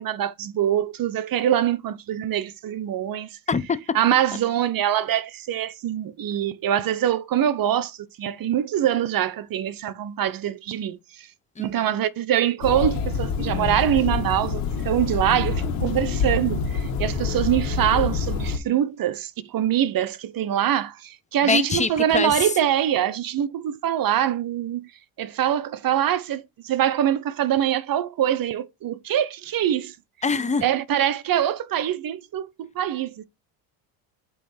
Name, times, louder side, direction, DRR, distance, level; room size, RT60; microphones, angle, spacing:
voice 1, 0.0-3.4 3.9-11.3 11.6-24.9 25.2-29.9 30.6-33.2, right 11 dB, 45° right, 0.8 m, -24 dB
sound 1, 12.6-18.6, left 5 dB, 85° left, 1.6 m, -26 dB
voice 2, 21.4-22.5 30.2-30.6, left 4 dB, 15° left, 0.7 m, -24 dB
8.2 x 3.1 x 5.6 m
cardioid pair, 105°, 49 cm